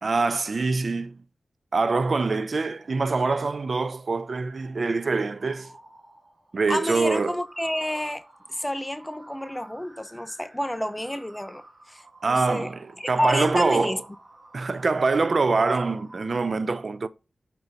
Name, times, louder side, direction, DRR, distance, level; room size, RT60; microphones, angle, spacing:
voice 1, 0.0-1.2 1.7-5.7 6.5-7.4 12.2-12.8 13.1-14.0 14.5-17.1, right 4 dB, 65° right, 0.4 m, -24 dB
sound 1, 2.6-16.3, right 2 dB, 45° right, 2.3 m, -52 dB
voice 2, 6.7-8.2 8.5-12.0 12.3-12.7 13.0-14.0, left 1 dB, 15° left, 0.7 m, -29 dB
4.6 x 4.0 x 5.4 m
cardioid pair, 40°, 0 cm